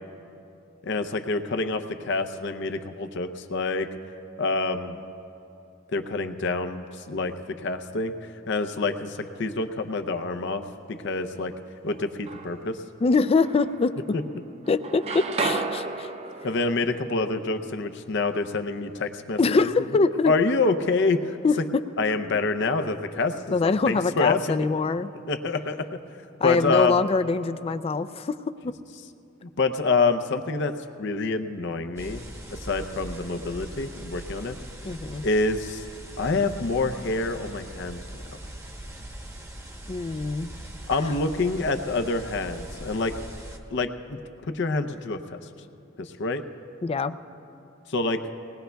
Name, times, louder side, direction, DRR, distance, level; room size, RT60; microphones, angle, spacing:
voice 1, 0.8-3.9 4.4-5.0 5.9-8.1 8.5-11.5 11.8-12.8 14.1-14.2 16.4-19.7 20.3-21.4 22.0-24.6 25.3-25.8 26.4-27.0 29.6-30.7 31.0-32.3 32.5-34.6 35.2-35.8 36.2-38.0 38.2-38.4 40.9-43.2 43.7-45.4 46.0-46.4 47.9-48.2, left 3 dB, 65° left, 8 dB, 0.6 m, -27 dB
sound 1, 11.9-12.8 13.4-14.4 14.6-18.6, right 3 dB, 30° right, 0.6 m, -34 dB
voice 2, 13.0-13.9 14.7-16.1 19.4-20.4 21.4-21.5 23.5-25.1 26.4-28.4 34.9-35.2 39.9-40.5 46.8-47.1, left 4 dB, 30° left, 13 dB, 0.3 m, -23 dB
sound 2, 32.0-43.6, right 1 dB, 15° right, 1.0 m, -41 dB
20.0 x 19.5 x 2.3 m, 2.7 s
head